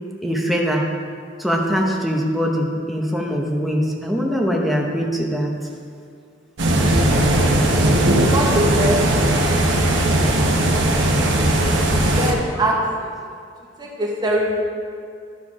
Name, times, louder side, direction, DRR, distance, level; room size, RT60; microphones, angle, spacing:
voice 1, 0.2-0.8 1.4-5.5, equal, ahead, -1 dB, 0.9 m, -22 dB
sound 1, 6.6-12.3, right 1 dB, 75° right, 1.1 m, -18 dB
voice 2, 8.3-9.0 12.2-12.7 13.0-13.1 13.8-14.6, right 1 dB, 25° right, -3 dB, 1.3 m, -22 dB
12.0 x 4.5 x 4.9 m, 2.3 s
head